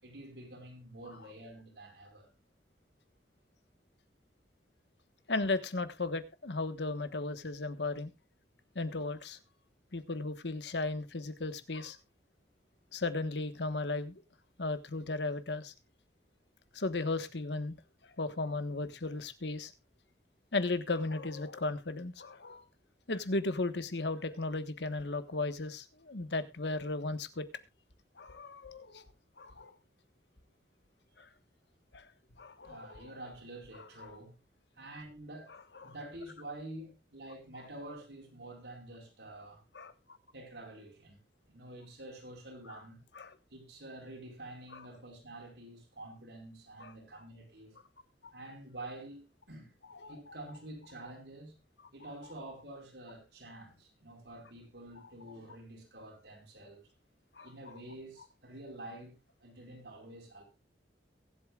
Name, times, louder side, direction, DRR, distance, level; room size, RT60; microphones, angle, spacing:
voice 1, 0.0-2.3 32.6-34.3 34.7-35.5 35.8-39.6 40.3-41.2 41.4-43.0 43.5-47.7 48.3-49.7 50.1-51.6 51.9-56.9 57.3-59.1 59.4-60.4, right 1 dB, 80° right, 4.7 m, -48 dB
voice 2, 5.3-8.1 8.7-9.4 9.9-12.0 12.9-14.2 14.6-15.7 16.7-17.8 18.2-19.7 20.5-22.6 23.1-27.4 28.2-29.0 29.4-29.7 31.2-31.3 31.9-32.1 32.4-33.1 34.0-34.1 35.8-35.9 39.7-39.9 43.1-43.3 44.7-44.8 46.8-46.9 48.2-48.3 49.9-50.3 57.4-57.5, left 3 dB, 80° left, 1.3 m, -35 dB
23.0 x 8.4 x 2.4 m
head